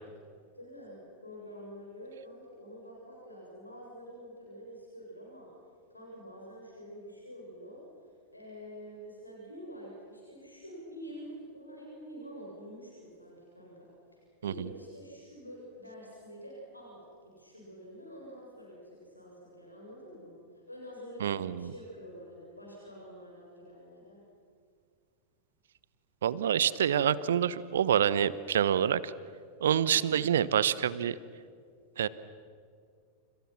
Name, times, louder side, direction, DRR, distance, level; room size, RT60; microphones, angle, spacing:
voice 1, 0.5-5.5 5.9-24.2, equal, 85° left, -3 dB, 7.5 m, -47 dB
voice 2, 21.2-21.7 26.2-29.1 29.6-31.1 32.0-32.1, right 9 dB, 60° right, 18 dB, 1.0 m, -27 dB
30.0 x 29.5 x 6.1 m, 2.2 s
figure-of-eight pair, 90°, 0 cm